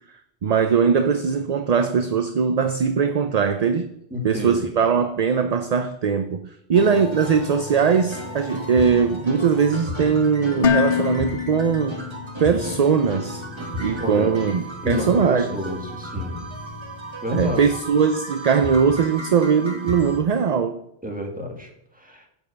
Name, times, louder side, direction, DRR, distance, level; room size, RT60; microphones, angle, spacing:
voice 1, 0.4-3.9 4.2-12.0 12.4-13.4 13.8-15.5 17.3-20.8, right 6 dB, 45° right, 0.6 m, -20 dB
voice 2, 4.1-4.7 13.9-14.3 14.8-16.4 17.2-17.7 21.0-22.3, left 1 dB, 10° right, 1.8 m, -30 dB
sound 1, 6.7-20.2, equal, 25° right, 1.4 m, -33 dB
Dishes pots and pans, 10.6-12.7, left 9 dB, 65° left, 0.8 m, -25 dB
9.1 x 5.5 x 7.9 m
omnidirectional pair, 1.1 m